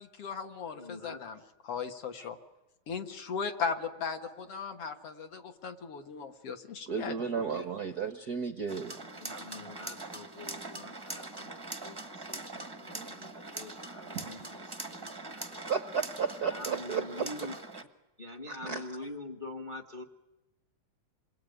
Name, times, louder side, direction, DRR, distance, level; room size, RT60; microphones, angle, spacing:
voice 1, 0.0-2.4 2.9-7.6, left 5 dB, 55° left, 7 dB, 2.6 m, -38 dB
voice 2, 0.8-1.2 9.2-14.4 15.0-15.6 16.5-17.6 18.2-20.0, left 2 dB, 25° left, 6 dB, 1.0 m, -45 dB
voice 3, 6.9-9.0 12.9-13.1 14.1-14.3 15.7-17.5 18.5-18.9, right 6 dB, 75° right, 9 dB, 0.8 m, -34 dB
sound 1, 8.7-17.8, right 2 dB, 20° right, 0.6 m, -42 dB
28.0 x 22.0 x 9.3 m, 1.0 s
omnidirectional pair, 3.4 m